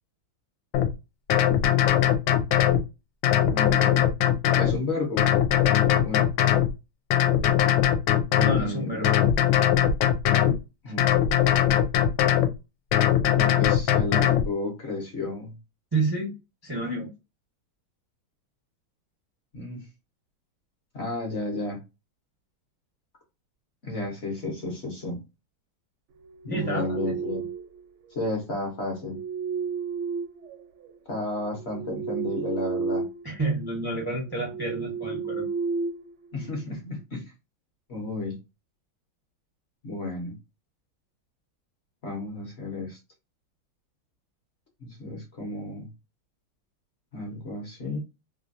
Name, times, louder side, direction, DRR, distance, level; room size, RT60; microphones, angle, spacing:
sound 1, 0.7-0.9 1.3-2.8 3.2-4.8 5.2-6.7 7.1-8.6 9.0-10.6 11.0-12.5 12.9-14.5, left 10 dB, 80° left, 1.3 m, -21 dB
voice 1, 3.5-4.1 4.6-5.3 6.0-6.3 8.5-9.2 10.8-11.1 13.3-15.5 19.5-19.8 20.9-21.8 23.8-25.2 26.4-27.5 28.1-29.2 31.1-33.1 36.3-37.3 37.9-38.4 39.8-40.4 42.0-43.0 44.8-45.9 47.1-48.0, left 2 dB, 50° left, 0.9 m, -32 dB
voice 2, 8.4-9.1 10.8-10.9 15.9-16.3 16.6-17.1 26.5-27.2 33.2-35.5, right 2 dB, 35° right, 0.3 m, -29 dB
sound 2, 26.3-27.8 28.8-30.9 31.4-33.3 33.6-33.8 34.3-36.6, right 5 dB, 75° right, 1.0 m, -32 dB
3.2 x 2.4 x 2.5 m
omnidirectional pair, 2.2 m